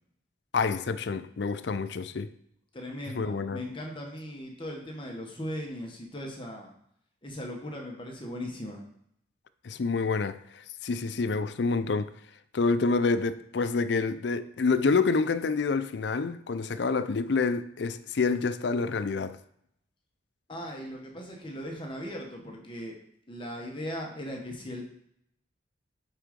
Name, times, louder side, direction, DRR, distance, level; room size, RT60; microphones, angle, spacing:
voice 1, 0.5-2.3 3.1-3.6 9.6-12.1 12.5-19.4, left 4 dB, 65° left, 0.5 m, -28 dB
voice 2, 2.7-6.7 7.2-8.8 20.5-23.0 23.3-24.9, equal, 25° left, 1.1 m, -38 dB
8.3 x 3.8 x 5.1 m
head